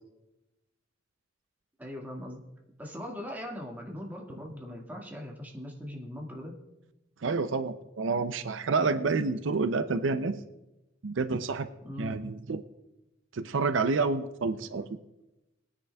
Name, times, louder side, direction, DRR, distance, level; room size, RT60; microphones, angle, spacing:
voice 1, 1.8-2.4 2.8-6.6 11.8-12.2 14.6-14.8, left 1 dB, 10° right, -1 dB, 1.7 m, -40 dB
voice 2, 7.2-10.4 11.0-11.7 12.0-12.6 13.3-14.8, right 4 dB, 80° right, 11 dB, 0.5 m, -28 dB
21.5 x 9.7 x 2.3 m, 0.97 s
head